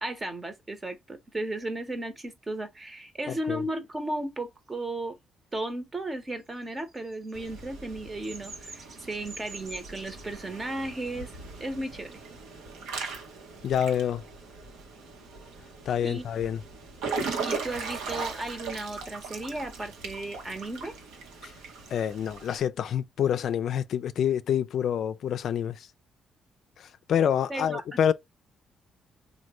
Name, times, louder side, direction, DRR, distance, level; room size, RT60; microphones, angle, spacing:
voice 1, 0.0-5.2 5.5-11.3 11.6-12.1 16.0-16.2 17.5-20.9 27.5-28.1, right 1 dB, 25° right, 0.9 m, -35 dB
voice 2, 3.3-3.6 13.6-14.2 15.9-16.6 21.4-21.5 21.9-25.9 26.8-28.1, left 9 dB, 70° left, 0.3 m, -27 dB
Bird vocalization bird call bird song, 6.5-10.3, right 3 dB, 50° right, 0.8 m, -46 dB
Water / Splash splatter / Drip, 7.3-22.6, right 4 dB, 90° right, 0.8 m, -39 dB
3.1 x 2.1 x 3.0 m
cardioid pair, 90°, 0 cm